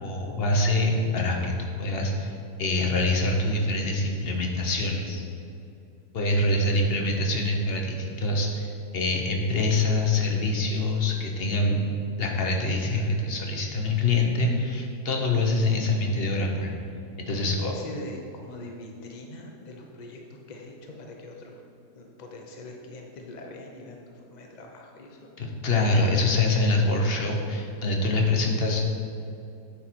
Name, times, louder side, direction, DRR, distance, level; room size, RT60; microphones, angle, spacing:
voice 1, 0.0-2.3 2.6-5.2 6.1-11.8 12.2-16.7 17.3-17.7 25.4-28.9, left 2 dB, 45° left, 1 dB, 0.9 m, -25 dB
voice 2, 17.3-21.6 21.9-25.3, left 1 dB, 70° left, 1 dB, 0.4 m, -43 dB
9.0 x 4.5 x 4.5 m, 2.6 s
omnidirectional pair, 1.8 m